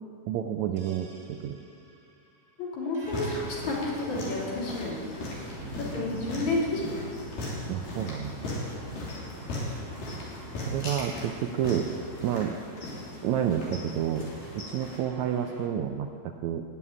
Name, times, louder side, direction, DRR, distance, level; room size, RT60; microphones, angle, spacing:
voice 1, 0.3-1.6 7.7-8.4 10.7-11.9 12.2-12.6 13.2-14.3 14.5-16.6, right 9 dB, 80° right, 5 dB, 1.7 m, -29 dB
sound 1, 0.8-15.7, right 2 dB, 25° right, 1.9 m, -47 dB
voice 2, 2.6-5.0 5.8-6.8, left 2 dB, 60° left, -4 dB, 4.1 m, -30 dB
sound 2, 3.0-15.0, left 1 dB, 80° left, 4.9 m, -38 dB
16.5 x 7.3 x 9.8 m, 2.3 s
omnidirectional pair, 3.8 m